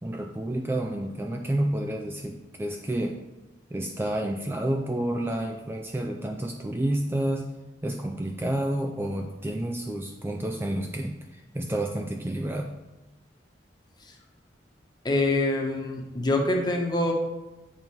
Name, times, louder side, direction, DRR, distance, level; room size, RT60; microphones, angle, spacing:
voice 1, 0.0-3.2 3.7-7.5 7.8-12.7, right 1 dB, 15° right, 2 dB, 0.4 m, -30 dB
voice 2, 15.0-17.1, left 2 dB, 25° left, 1 dB, 1.1 m, -25 dB
8.7 x 4.0 x 4.6 m, 1.1 s
head